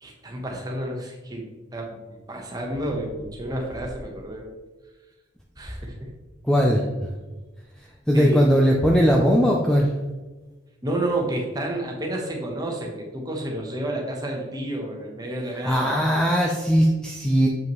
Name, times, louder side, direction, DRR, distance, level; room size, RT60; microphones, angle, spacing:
voice 1, 0.0-4.5 5.6-6.1 8.1-8.4 10.8-16.0, right 1 dB, 20° right, 0 dB, 1.1 m, -30 dB
voice 2, 6.4-7.1 8.1-9.9 15.7-17.5, equal, 5° left, -1 dB, 0.5 m, -19 dB
7.2 x 5.5 x 3.1 m, 1.2 s
head